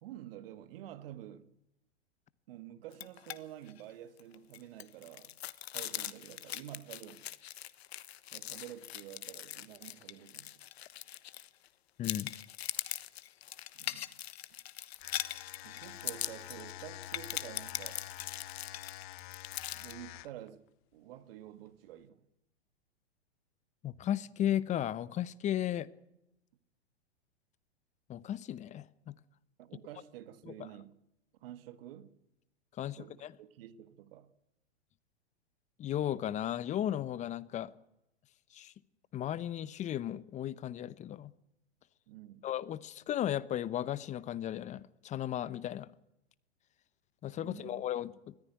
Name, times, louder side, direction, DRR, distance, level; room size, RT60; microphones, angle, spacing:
voice 1, 0.0-1.5 2.5-5.3 5.7-7.3 8.3-10.6 13.7-14.1 15.6-18.0 19.7-20.7 20.9-22.2 29.6-31.0 31.4-32.2 32.8-34.3 42.1-42.5 47.4-47.9, right 12 dB, 55° right, 1.9 m, -49 dB
sound 1, 2.9-3.4 3.7-3.8 4.2-11.7 12.0-19.9, left 12 dB, 65° left, 1.3 m, -41 dB
voice 2, 12.0-12.3 23.8-25.9 28.1-29.1 30.5-30.6 32.8-33.3 35.8-37.7 38.5-38.7 39.1-41.3 42.4-45.9 47.2-48.3, left 11 dB, 20° left, 0.8 m, -35 dB
sound 2, 14.9-20.5, left 15 dB, 45° left, 0.8 m, -47 dB
20.5 x 14.5 x 9.5 m
hypercardioid pair, 120°, 34 cm